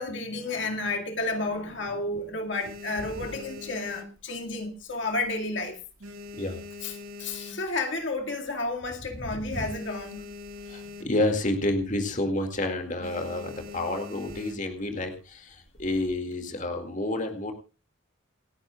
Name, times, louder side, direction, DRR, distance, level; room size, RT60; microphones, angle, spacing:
voice 1, 0.0-5.8 6.8-10.3, left 2 dB, 60° left, 2.1 m, -31 dB
sound 1, 1.2-1.9 2.3-4.8 5.1-5.5 5.8-8.0 8.5-8.6 8.8-8.9 9.2-11.4 11.7-12.0 12.3-12.6 13.0-14.8 15.6-16.1, left 3 dB, 85° right, 2.2 m, -43 dB
voice 2, 10.7-17.5, left 1 dB, 40° left, 2.2 m, -29 dB
28.5 x 10.5 x 2.4 m
head